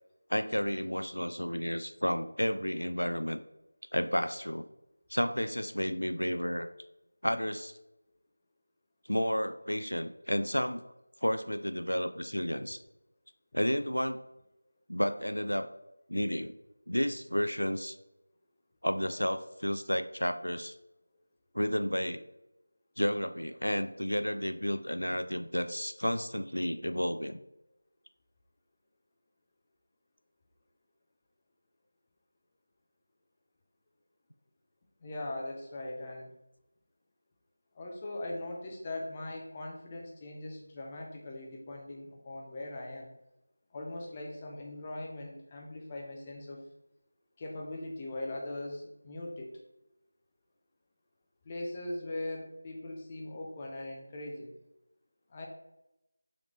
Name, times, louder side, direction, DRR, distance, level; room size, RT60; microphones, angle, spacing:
voice 1, 0.3-3.4 3.9-4.6 5.1-6.7 7.2-7.7 9.1-10.8 11.2-12.8 13.5-14.2 14.9-15.7 16.1-16.6 16.9-18.0 18.8-20.7 21.5-22.2 23.0-27.4, equal, 85° left, 10 dB, 0.3 m, -31 dB
voice 2, 35.0-36.3 37.7-43.1 43.7-46.6 47.4-49.6 51.4-54.5 55.3-55.5, left 1 dB, 20° left, 0 dB, 0.6 m, -40 dB
3.7 x 3.5 x 3.0 m, 0.91 s
figure-of-eight pair, 170°, 0 cm